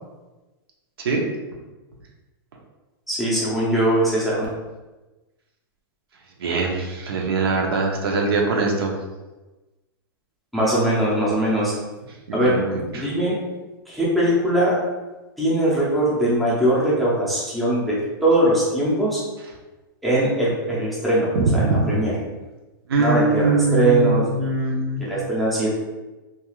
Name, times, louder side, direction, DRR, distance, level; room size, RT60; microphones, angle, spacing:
voice 1, 3.1-4.5 10.5-11.7 12.3-12.6 12.9-13.4 13.9-14.8 15.4-18.0 18.2-19.2 20.0-22.1 23.0-24.4 25.0-25.7, right 1 dB, ahead, -8 dB, 0.5 m, -21 dB
voice 2, 6.4-8.9 12.3-13.0 21.3-21.9 22.9-25.0, right 3 dB, 85° right, 1 dB, 0.6 m, -22 dB
2.4 x 2.3 x 3.0 m, 1.1 s
supercardioid pair, 170°, 12 cm